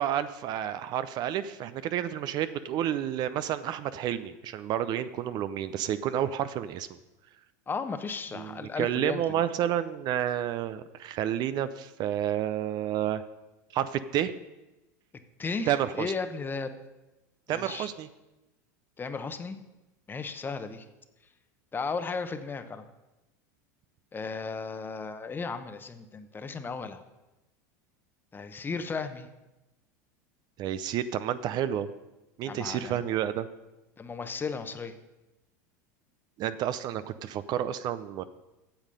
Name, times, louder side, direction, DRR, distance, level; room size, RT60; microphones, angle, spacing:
voice 1, 0.0-6.9 8.3-13.2 13.7-14.3 15.7-16.1 17.5-18.1 30.6-31.9 32.4-33.5 36.4-38.2, right 10 dB, 45° right, 13 dB, 0.5 m, -30 dB
voice 2, 7.7-9.4 15.4-16.7 17.5-17.9 19.0-19.6 20.1-20.8 21.7-22.9 24.1-27.0 28.3-29.3 32.5-33.0 34.0-35.0, left 4 dB, 20° left, 9 dB, 0.9 m, -35 dB
8.9 x 7.3 x 6.6 m, 1.0 s
hypercardioid pair, 95°, 10 cm